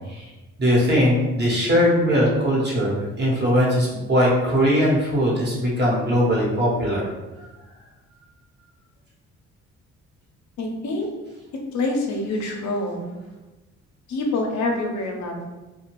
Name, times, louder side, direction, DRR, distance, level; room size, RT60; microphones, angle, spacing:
voice 1, 0.6-7.1, equal, 35° right, -4 dB, 1.1 m, -20 dB
voice 2, 10.6-11.1 11.7-13.0 14.1-15.5, left 2 dB, 70° left, 1 dB, 0.7 m, -26 dB
2.7 x 2.3 x 3.0 m, 1.1 s
cardioid pair, 90°, 30 cm